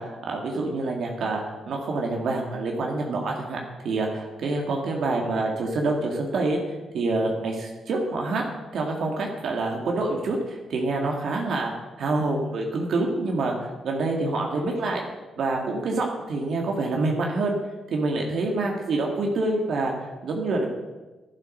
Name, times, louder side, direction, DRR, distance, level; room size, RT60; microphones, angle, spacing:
voice 1, 0.0-3.6 3.8-8.4 8.7-11.7 12.0-15.0 15.4-17.6 17.9-20.7, right 2 dB, 70° right, 0 dB, 2.1 m, -27 dB
11.5 x 11.0 x 6.4 m, 1.2 s
cardioid pair, 100°, 0 cm